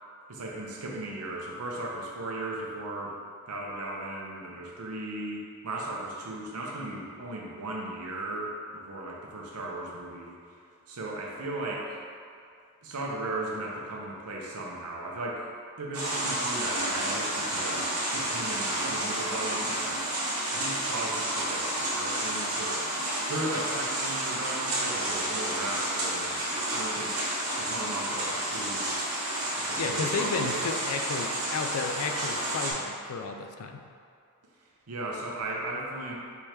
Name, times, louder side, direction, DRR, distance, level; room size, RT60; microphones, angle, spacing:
voice 1, 0.3-3.1 3.5-10.4 10.9-12.0 12.8-20.0 20.5-22.8 23.3-27.2 27.6-29.1 29.6-30.6 34.9-36.1, right 2 dB, 90° right, -2 dB, 0.8 m, -36 dB
sound 1, 15.9-32.7, right 1 dB, 70° right, 1.1 m, -30 dB
voice 2, 29.8-33.8, left 4 dB, 70° left, 5 dB, 0.4 m, -33 dB
3.5 x 3.2 x 4.4 m, 2.4 s
head